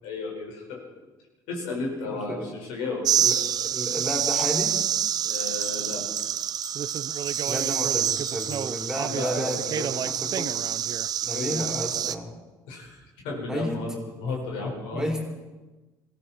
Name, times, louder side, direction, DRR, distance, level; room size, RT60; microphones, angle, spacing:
voice 1, 0.0-0.8 1.5-3.1 5.2-6.0 9.1-9.8 11.3-11.6 12.7-15.1, left 3 dB, 80° left, -1 dB, 4.8 m, -33 dB
sound 1, 3.0-12.2, right 9 dB, 50° right, 0.6 m, -27 dB
voice 2, 3.2-4.7 7.4-10.5 11.2-12.4 13.5-13.8 14.9-15.2, equal, 5° right, 0 dB, 3.9 m, -32 dB
sound 2, 5.3-9.3, left 1 dB, 20° left, 2.1 m, -44 dB
21.5 x 15.0 x 4.3 m, 1.2 s
supercardioid pair, 70°, 9 cm